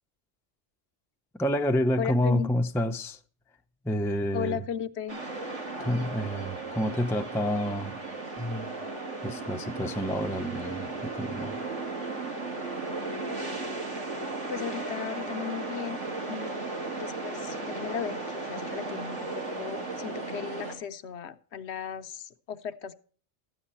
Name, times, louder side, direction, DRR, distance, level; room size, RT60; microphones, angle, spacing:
voice 1, 1.3-3.2 3.8-4.6 5.8-8.0 8.4-8.7 9.2-11.6, equal, 5° left, 0.4 m, -28 dB
voice 2, 2.0-2.5 4.3-5.2 14.5-16.0 16.3-23.0, left 8 dB, 70° left, 0.9 m, -36 dB
sound 1, 5.1-20.8, right 3 dB, 80° right, 2.6 m, -35 dB
13.0 x 9.2 x 4.2 m
omnidirectional pair, 1.2 m